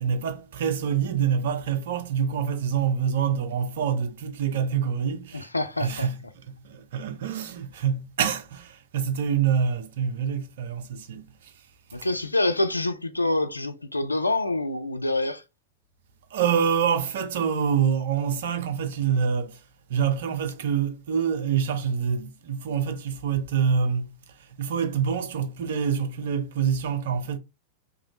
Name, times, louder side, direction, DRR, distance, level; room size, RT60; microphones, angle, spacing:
voice 1, 0.0-5.5 5.8-6.2 6.6-11.5 16.3-19.6 19.9-24.1 24.6-27.4, right 7 dB, 60° right, 0.6 m, -26 dB
voice 2, 5.3-6.1 11.9-15.4, left 2 dB, 85° left, 0.3 m, -26 dB
3.0 x 2.5 x 3.0 m
figure-of-eight pair, 90°, 0 cm